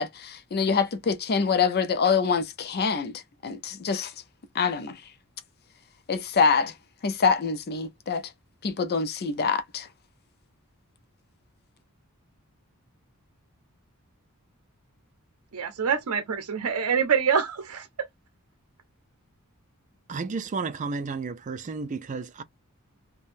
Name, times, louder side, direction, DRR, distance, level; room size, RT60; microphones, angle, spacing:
voice 1, 0.0-4.1 4.5-5.0 6.1-6.8 7.0-8.3 8.6-9.9, left 5 dB, 45° left, 0.5 m, -25 dB
voice 2, 15.5-17.9, right 7 dB, 80° right, 0.6 m, -25 dB
voice 3, 20.1-22.4, right 4 dB, 35° right, 0.4 m, -32 dB
3.3 x 2.2 x 2.5 m
head